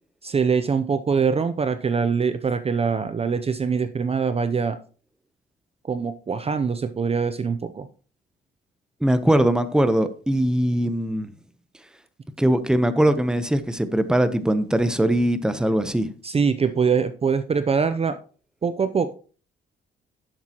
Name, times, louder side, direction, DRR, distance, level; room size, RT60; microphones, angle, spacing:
voice 1, 0.2-4.8 5.9-7.9 16.2-18.2 18.6-19.1, right 5 dB, 30° right, 0.6 m, -23 dB
voice 2, 9.0-11.3 12.4-16.1, right 1 dB, 5° right, 0.8 m, -21 dB
10.0 x 7.4 x 2.9 m
cardioid pair, 90°, 20 cm